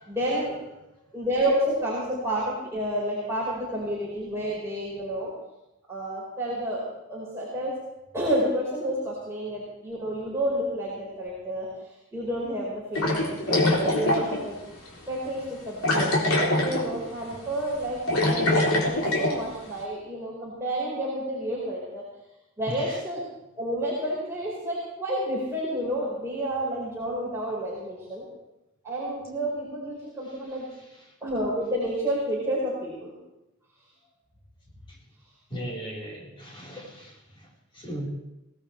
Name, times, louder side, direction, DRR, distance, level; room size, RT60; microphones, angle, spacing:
voice 1, 0.1-0.5 1.1-5.3 5.9-7.7 8.1-11.7 12.1-14.6 15.1-22.0 22.6-23.2 23.6-28.2 28.8-30.7 31.2-33.1, right 1 dB, 15° right, -7 dB, 4.7 m, -30 dB
sound 1, 12.9-14.4 14.9-15.0 15.8-17.0 17.3-17.5 17.8-19.4, left 1 dB, 90° left, 3.6 m, -23 dB
voice 2, 22.7-23.0 30.0-31.1 34.9-35.0 35.5-38.1, equal, 25° left, -4 dB, 4.4 m, -39 dB
23.0 x 18.0 x 3.3 m, 0.96 s
head